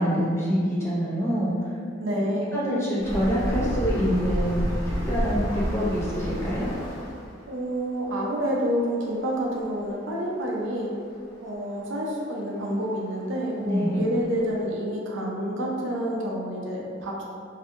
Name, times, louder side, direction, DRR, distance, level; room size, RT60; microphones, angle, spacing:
voice 1, 0.0-1.7 2.5-6.7 13.7-14.0, equal, 15° left, -7 dB, 0.5 m, -26 dB
voice 2, 2.0-2.6 7.5-10.9 11.4-17.2, equal, 65° right, -3 dB, 0.5 m, -28 dB
sound 1, 3.0-7.4 9.3-9.4 9.6-9.7 10.6-10.7 13.1-13.2 13.8-13.9 14.4-14.5, equal, 45° left, 1.5 m, -29 dB
2.7 x 2.5 x 2.5 m, 2.2 s
head